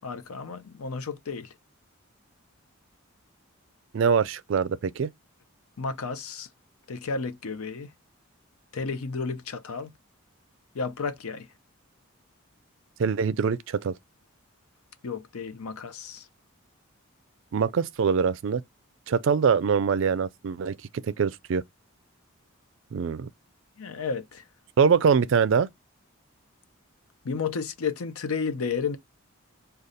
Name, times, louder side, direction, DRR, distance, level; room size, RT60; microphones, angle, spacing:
voice 1, 0.0-1.5 5.8-6.5 6.9-7.9 8.7-9.9 10.7-11.5 15.0-16.2 23.8-24.4 27.2-29.0, left 5 dB, 85° left, 0.6 m, -32 dB
voice 2, 3.9-5.1 13.0-14.0 17.5-18.6 19.1-21.6 22.9-23.3 24.8-25.7, right 6 dB, 60° right, 0.3 m, -23 dB
5.0 x 2.3 x 4.0 m
head